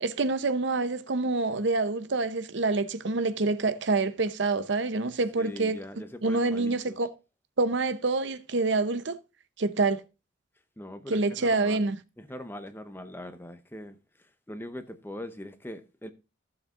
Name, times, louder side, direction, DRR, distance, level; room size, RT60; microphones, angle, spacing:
voice 1, 0.0-5.8 6.2-7.1 7.6-9.2 9.6-10.0 11.1-12.0, right 3 dB, 60° right, 0.7 m, -27 dB
voice 2, 5.4-7.0 10.8-11.9 12.2-14.0 14.5-16.1, left 1 dB, 10° left, 0.7 m, -41 dB
15.0 x 7.2 x 2.4 m
head